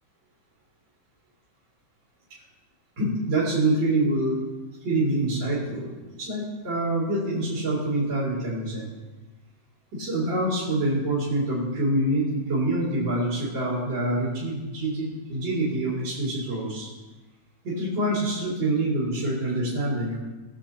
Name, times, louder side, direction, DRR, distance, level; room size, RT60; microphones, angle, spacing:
voice 1, 3.0-4.4 4.8-5.9 6.2-8.9 9.9-16.9 17.6-20.2, right 1 dB, 65° right, -8 dB, 3.4 m, -26 dB
19.5 x 6.9 x 2.9 m, 1.2 s
omnidirectional pair, 2.3 m